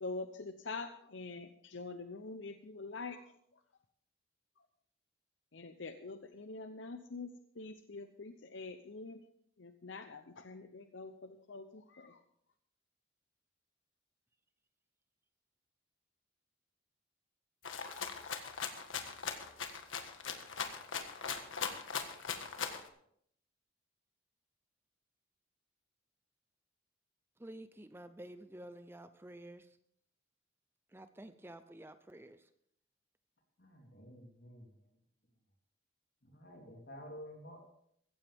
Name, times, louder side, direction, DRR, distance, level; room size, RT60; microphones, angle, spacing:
voice 1, 0.0-3.6 4.6-4.7 5.5-7.3 7.5-9.2 9.6-12.2, left 3 dB, 75° left, 8 dB, 0.8 m, -45 dB
Rattle (instrument), 17.6-22.9, left 6 dB, 90° left, 1.6 m, -40 dB
voice 2, 27.4-29.8 30.9-32.5, right 1 dB, 10° right, 10 dB, 0.6 m, -51 dB
voice 3, 33.6-34.7 36.2-37.6, equal, 55° left, 1 dB, 3.5 m, -51 dB
16.0 x 15.0 x 3.6 m, 0.69 s
head